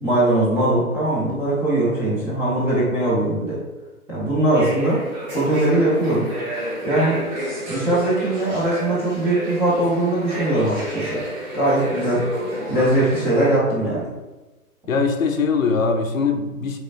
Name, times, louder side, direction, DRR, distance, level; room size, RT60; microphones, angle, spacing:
voice 1, 0.0-3.6 4.1-5.0 5.3-6.3 6.8-7.2 7.7-11.2 11.5-12.2 12.7-14.1, right 1 dB, 5° right, -10 dB, 0.7 m, -20 dB
sound 1, 4.5-13.5, equal, 30° right, 1.4 m, -30 dB
voice 2, 14.9-16.8, left 4 dB, 60° left, 5 dB, 0.7 m, -21 dB
4.9 x 3.7 x 2.5 m, 1.1 s
figure-of-eight pair, 130°, 45 cm